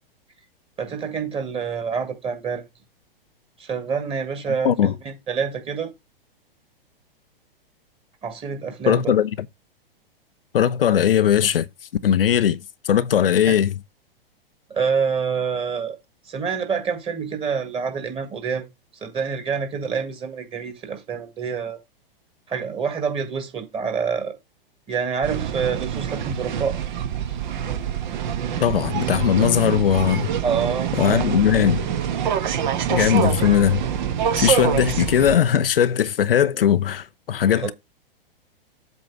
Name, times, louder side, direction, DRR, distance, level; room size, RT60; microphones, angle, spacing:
voice 1, 0.8-2.6 3.6-5.9 8.2-9.1 13.5-13.6 14.7-16.0 16.3-18.7 19.0-21.8 22.5-24.4 24.9-26.8 30.4-31.3 37.5-37.7, right 6 dB, 20° right, 1.9 m, -27 dB
voice 2, 8.9-9.3 10.5-11.7 12.0-13.7 28.6-30.3 30.9-31.9 32.9-33.8 34.4-37.7, left 9 dB, 70° left, 0.6 m, -19 dB
sound 1, 25.2-35.4, right 9 dB, 50° right, 1.2 m, -25 dB
8.0 x 3.0 x 6.1 m
figure-of-eight pair, 110°, 29 cm